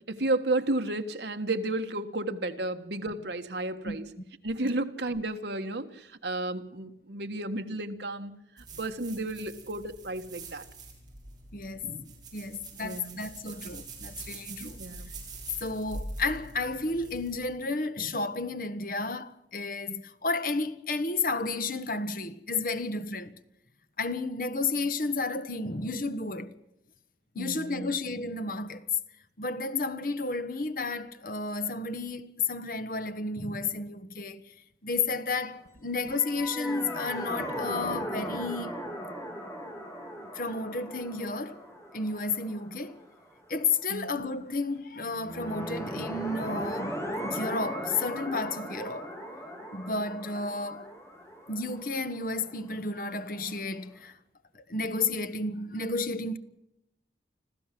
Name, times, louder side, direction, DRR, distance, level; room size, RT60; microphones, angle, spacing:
voice 1, 0.1-4.0 4.4-8.3 8.6-10.6 12.8-13.2 14.6-15.1 27.4-27.9 43.9-44.1, right 2 dB, 70° right, 1.6 m, -32 dB
sound 1, 8.6-17.3, right 2 dB, 25° right, 6.5 m, -44 dB
voice 2, 11.5-14.8 15.6-23.3 24.0-26.6 27.3-28.9 29.4-34.4 34.8-38.7 40.3-41.6 41.9-43.0 43.5-49.2 49.7-50.9 51.5-54.2 54.5-56.4, left 3 dB, 50° left, 1.3 m, -32 dB
sound 2, 36.0-43.2 45.1-52.9, equal, 15° left, 3.7 m, -38 dB
26.0 x 15.0 x 7.6 m
head